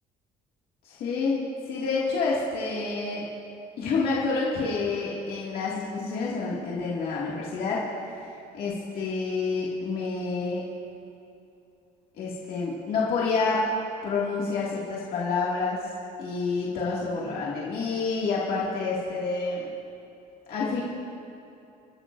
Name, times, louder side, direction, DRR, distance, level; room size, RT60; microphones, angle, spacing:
voice 1, 0.8-3.3 3.8-10.6 12.2-13.6 14.0-15.8 16.2-19.7 20.5-20.8, left 4 dB, 65° left, -6 dB, 2.1 m, -28 dB
25.5 x 12.0 x 2.6 m, 2.7 s
cardioid pair, 140°, 16 cm